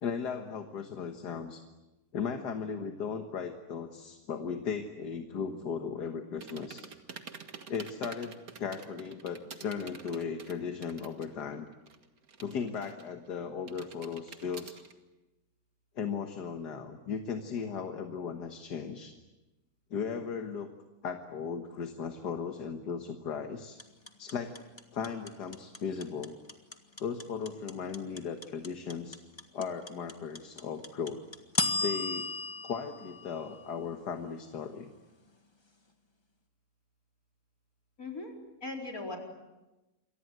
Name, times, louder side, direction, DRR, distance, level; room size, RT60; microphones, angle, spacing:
voice 1, 0.0-1.6 2.1-6.8 7.7-11.7 12.4-14.8 16.0-19.1 19.9-20.7 21.0-23.8 24.2-24.6 24.9-26.4 27.0-29.2 29.5-31.2 31.8-32.3 32.6-34.9, left 6 dB, 75° left, 6 dB, 2.0 m, -37 dB
sound 1, 6.4-11.4 11.7-13.3 13.7-14.9, right 5 dB, 60° right, 2.1 m, -47 dB
sound 2, 23.8-34.0, left 3 dB, 15° left, 1.7 m, -35 dB
voice 2, 38.0-38.3 38.6-39.2, left 2 dB, 55° left, 1 dB, 4.9 m, -38 dB
28.5 x 23.5 x 8.0 m, 1.0 s
omnidirectional pair, 1.8 m